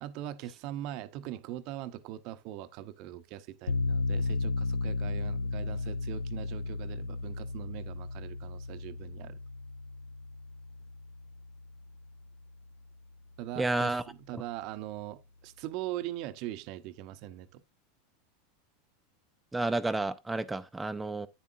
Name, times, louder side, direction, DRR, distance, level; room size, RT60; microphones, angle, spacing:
voice 1, 0.0-9.4 13.4-17.6, right 13 dB, 55° right, 0.7 m, -41 dB
sound 1, 3.7-12.5, left 3 dB, 85° left, 0.4 m, -35 dB
voice 2, 13.6-14.0 19.5-21.3, right 2 dB, 10° right, 0.5 m, -30 dB
9.2 x 7.1 x 2.5 m
hypercardioid pair, 90°, 0 cm